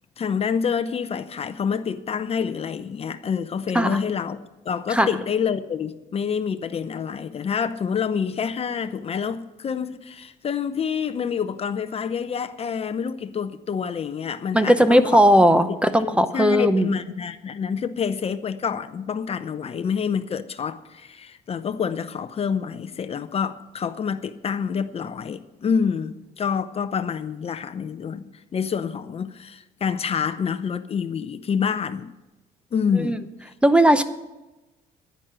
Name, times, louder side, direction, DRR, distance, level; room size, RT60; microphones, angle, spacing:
voice 1, 0.2-15.0 15.9-32.1 32.7-33.2, left 7 dB, 35° left, 0.7 m, -27 dB
voice 2, 14.5-16.9 32.9-33.2 33.6-34.0, equal, 5° right, 0.7 m, -17 dB
10.5 x 10.5 x 7.6 m
cardioid pair, 110°, 17 cm